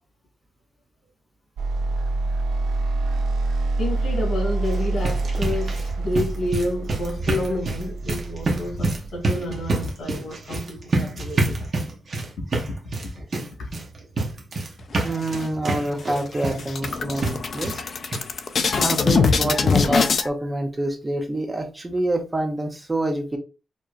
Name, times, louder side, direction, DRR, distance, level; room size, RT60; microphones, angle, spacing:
sound 1, 1.6-9.7, right 2 dB, 85° right, 0.5 m, -26 dB
voice 1, 3.8-11.7 13.6-13.7, left 1 dB, 75° left, 2.1 m, -29 dB
sound 2, 4.6-17.9 18.1-18.2 18.7-18.8 19.1-19.2, right 2 dB, 35° right, 0.9 m, -28 dB
sound 3, 15.0-15.7 16.1-16.2 16.5-20.3, left 5 dB, 40° left, 0.3 m, -22 dB
voice 2, 15.0-17.8 18.7-23.4, right 1 dB, 15° right, 0.6 m, -26 dB
4.6 x 2.9 x 2.4 m
wide cardioid pair, 175°, 0 cm